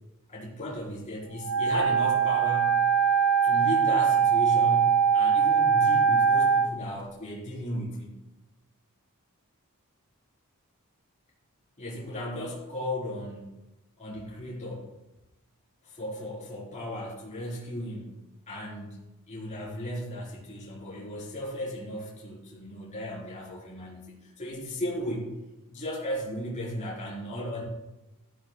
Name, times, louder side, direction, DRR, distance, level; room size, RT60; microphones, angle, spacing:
voice 1, 0.3-2.8 3.4-8.1 11.8-13.5 14.0-14.9 15.8-25.3 25.7-27.6, equal, 30° left, -6 dB, 4.3 m, -36 dB
Wind instrument woodwind instrument, 1.4-6.7, right 6 dB, 75° right, 2.7 m, -22 dB
13.5 x 13.0 x 2.3 m, 1.0 s
head